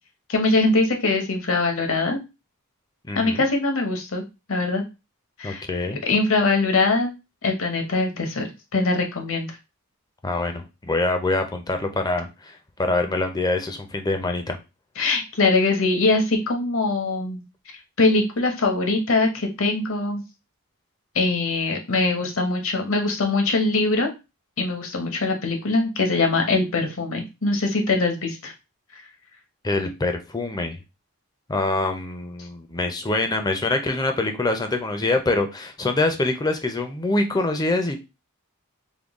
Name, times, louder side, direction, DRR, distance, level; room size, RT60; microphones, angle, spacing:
voice 1, 0.3-2.2 3.2-4.2 4.5-4.8 5.4-5.6 6.0-7.1 7.4-9.6 15.0-17.4 18.0-20.2 21.1-24.1 24.6-28.5, left 3 dB, 60° left, 4 dB, 0.9 m, -22 dB
voice 2, 3.1-3.4 5.4-6.0 10.2-14.6 29.6-30.8 31.5-38.0, left 2 dB, 15° left, 6 dB, 0.5 m, -25 dB
3.7 x 2.2 x 3.5 m, 0.26 s
head